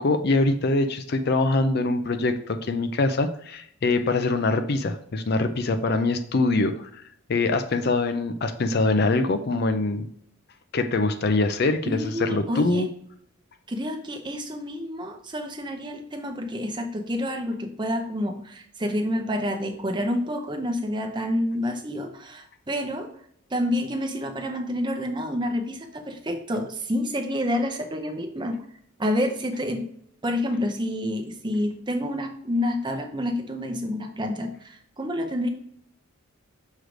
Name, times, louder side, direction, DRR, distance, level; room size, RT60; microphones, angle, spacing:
voice 1, 0.0-7.0 7.3-10.1 10.7-12.9, left 3 dB, 45° left, 9 dB, 0.4 m, -23 dB
voice 2, 11.8-12.8 13.7-23.1 23.5-28.6 29.0-29.9 30.2-35.5, left 1 dB, 20° right, 5 dB, 0.7 m, -28 dB
6.4 x 3.1 x 5.0 m, 0.67 s
head